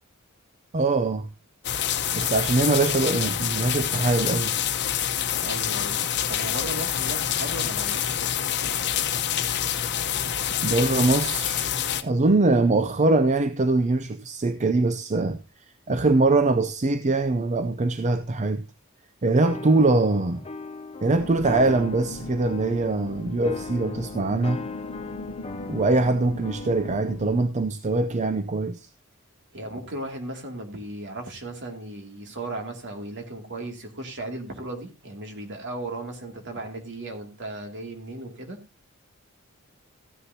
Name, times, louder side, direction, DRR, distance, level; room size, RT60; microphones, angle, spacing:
voice 1, 0.7-1.3 2.1-4.5 10.6-11.7 12.0-15.4 15.9-18.6 19.2-20.4 21.0-24.7 25.6-28.9, right 2 dB, 35° right, 0.5 m, -22 dB
sound 1, 1.6-12.0, left 10 dB, 55° left, 1.0 m, -26 dB
voice 2, 5.4-6.0 6.3-8.4 29.5-38.6, right 2 dB, 60° right, 2.6 m, -36 dB
sound 2, 19.4-27.2, left 3 dB, 30° left, 0.7 m, -38 dB
sound 3, 21.1-27.4, left 3 dB, 85° left, 0.6 m, -41 dB
15.0 x 10.0 x 2.8 m
head